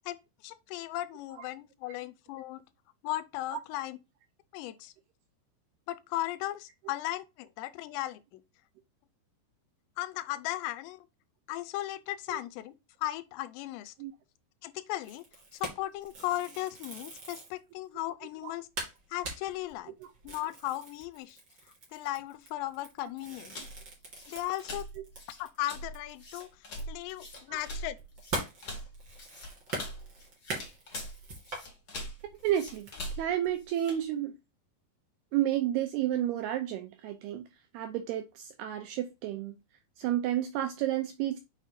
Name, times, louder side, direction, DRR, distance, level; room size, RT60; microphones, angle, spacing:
voice 1, 0.4-2.6 3.0-4.0 4.5-4.9 5.9-8.4 10.0-11.1 11.5-12.7 13.0-13.9 14.6-15.3 15.5-18.7 19.1-19.9 20.2-21.4 21.9-23.6 24.3-24.9 25.4-26.5 26.9-28.0, left 15 dB, 85° left, 2.8 m, -36 dB
sound 1, 15.0-17.6 18.1-18.2 18.4-18.5 18.8-25.6 25.9-26.0 26.4-31.7 32.2-32.9, right 2 dB, 30° right, 2.8 m, -42 dB
sound 2, 23.5-34.0, equal, 35° left, 1.7 m, -43 dB
voice 2, 32.4-32.9 33.2-34.3 35.3-37.4 37.7-39.6 40.0-41.4, right 12 dB, 80° right, 2.5 m, -31 dB
7.4 x 6.2 x 2.5 m
omnidirectional pair, 5.1 m